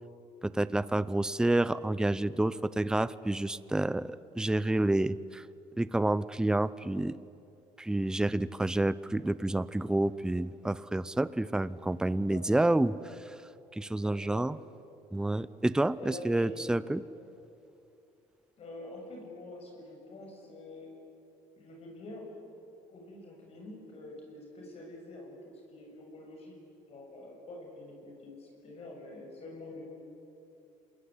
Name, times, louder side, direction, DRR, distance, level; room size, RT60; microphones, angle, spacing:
voice 1, 0.4-5.4 5.8-7.2 7.8-13.3 13.7-14.6 15.1-17.0, right 1 dB, 5° right, 17 dB, 0.6 m, -29 dB
voice 2, 14.0-14.5 16.0-16.6 18.6-20.9 21.6-22.3 22.9-26.6 26.9-29.8, left 2 dB, 45° left, 1 dB, 7.2 m, -46 dB
27.5 x 20.5 x 9.9 m, 2.7 s
cardioid pair, 110°, 14 cm